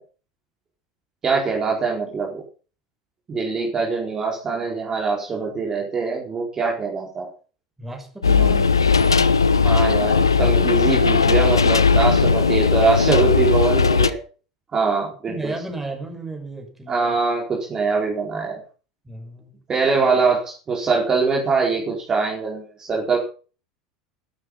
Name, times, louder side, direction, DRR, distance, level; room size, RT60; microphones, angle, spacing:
voice 1, 1.2-2.4 3.3-7.3 9.6-14.2 14.7-15.5 16.9-18.6 19.7-23.2, right 4 dB, 25° right, -1 dB, 4.5 m, -23 dB
voice 2, 7.8-8.7 11.9-12.5 15.3-17.2 19.0-19.6, right 2 dB, 10° right, 3 dB, 5.9 m, -34 dB
sound 1, 8.2-14.1, left 5 dB, 80° left, 0.9 m, -17 dB
13.0 x 12.5 x 5.7 m, 0.38 s
figure-of-eight pair, 75°, 2 cm